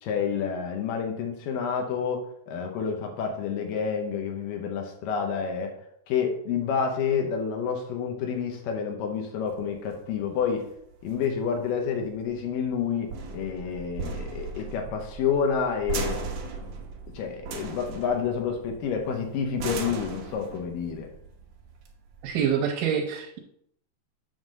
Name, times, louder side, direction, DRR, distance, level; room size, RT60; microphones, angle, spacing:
voice 1, 0.0-5.7 6.1-10.6 11.0-16.2 17.1-21.1, left 6 dB, 90° left, 3 dB, 2.6 m, -29 dB
sound 1, 9.5-22.5, right 4 dB, 65° right, 2.0 m, -38 dB
voice 2, 22.2-23.4, right 8 dB, 90° right, 0 dB, 2.5 m, -26 dB
7.8 x 3.8 x 6.4 m, 0.73 s
omnidirectional pair, 3.8 m